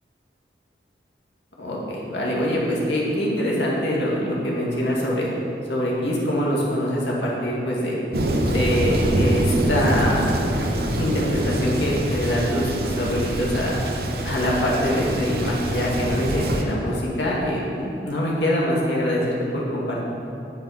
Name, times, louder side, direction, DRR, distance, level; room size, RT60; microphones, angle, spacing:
voice 1, 1.6-5.3 5.7-8.0 8.5-10.3 11.0-13.8 14.2-20.0, equal, 85° left, -4 dB, 2.2 m, -24 dB
Thunder, 8.1-16.6, right 1 dB, 60° right, 0.8 m, -24 dB
9.2 x 7.8 x 5.0 m, 2.8 s
head